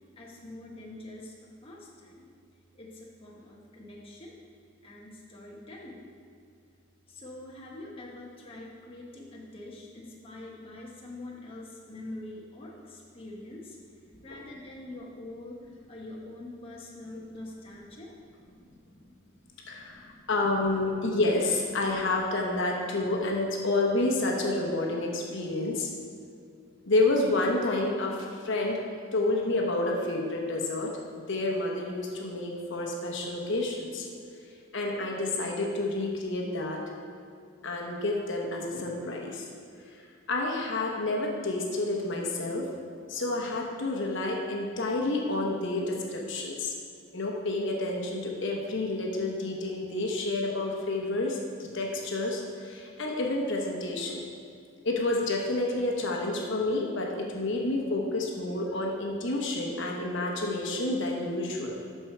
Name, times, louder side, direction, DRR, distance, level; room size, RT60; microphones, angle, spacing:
voice 1, 0.2-2.3 2.7-4.3 4.8-6.1 7.1-13.8 14.1-19.1 19.4-20.3, left 1 dB, 25° left, -3 dB, 1.0 m, -45 dB
voice 2, 19.7-25.9 26.9-28.8 29.1-30.9 31.2-34.1 34.7-36.8 37.6-39.5 39.9-40.0 40.3-42.7 43.1-46.8 47.1-54.3 54.8-61.8, left 2 dB, 55° left, 0 dB, 1.1 m, -29 dB
12.5 x 4.5 x 4.6 m, 2.4 s
head